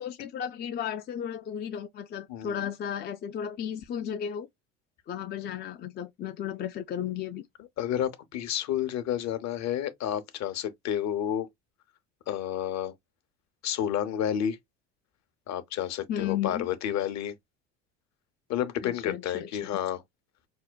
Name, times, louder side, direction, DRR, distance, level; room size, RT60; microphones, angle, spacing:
voice 1, 0.0-4.5 5.1-7.4 16.1-16.7 18.8-19.5, left 9 dB, 30° left, 0.4 m, -34 dB
voice 2, 2.3-2.7 7.6-11.5 12.3-12.9 13.6-14.6 15.5-17.3 18.5-20.0, left 10 dB, 50° left, 0.8 m, -30 dB
5.5 x 2.2 x 2.2 m
hypercardioid pair, 80°, 36 cm